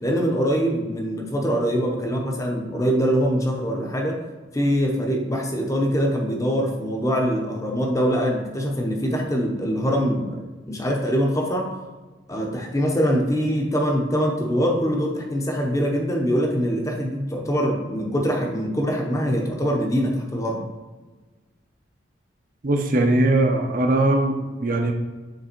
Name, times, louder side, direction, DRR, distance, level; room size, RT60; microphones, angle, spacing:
voice 1, 0.0-4.2 4.5-11.7 12.3-20.6, equal, 15° left, 1 dB, 0.7 m, -23 dB
voice 2, 22.6-24.9, right 2 dB, 45° right, 3 dB, 0.6 m, -20 dB
6.7 x 3.4 x 4.4 m, 1.3 s
head